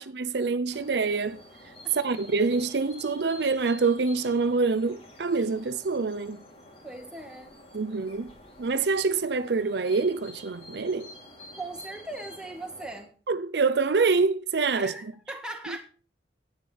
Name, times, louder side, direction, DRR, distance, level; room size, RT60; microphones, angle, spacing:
voice 1, 0.0-1.4 1.9-6.4 7.7-8.3 8.6-11.1 13.3-15.1, right 4 dB, 70° right, 0.6 m, -26 dB
sound 1, 0.7-13.0, left 1 dB, 35° left, 3.2 m, -49 dB
voice 2, 6.8-7.6 11.6-13.1 14.8-15.8, right 2 dB, 5° right, 1.9 m, -39 dB
10.5 x 8.7 x 6.1 m
head